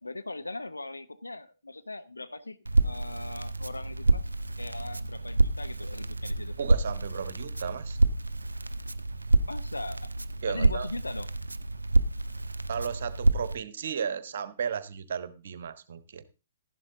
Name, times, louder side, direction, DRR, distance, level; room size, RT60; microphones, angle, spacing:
voice 1, 0.0-2.6 2.8-4.3 4.6-6.6 9.5-10.2 10.5-11.3, left 2 dB, 80° left, 0.9 m, -39 dB
Crackle, 2.7-13.6, right 2 dB, 80° right, 0.6 m, -28 dB
voice 2, 6.6-8.0 10.4-10.9 12.7-16.2, right 7 dB, 55° right, 1.2 m, -34 dB
12.0 x 11.5 x 3.8 m
figure-of-eight pair, 120°, 0 cm